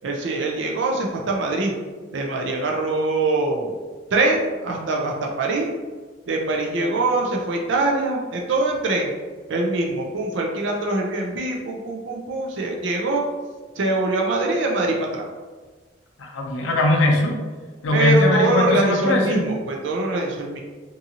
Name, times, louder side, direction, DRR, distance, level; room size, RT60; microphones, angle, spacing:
voice 1, 0.0-1.7 2.1-3.7 4.1-5.7 6.3-9.1 9.5-13.3 13.8-15.3 17.9-20.6, right 2 dB, 75° right, 0 dB, 0.4 m, -23 dB
voice 2, 16.2-17.4 17.8-19.5, left 2 dB, 90° left, 1 dB, 0.5 m, -20 dB
2.6 x 2.5 x 2.7 m, 1.4 s
head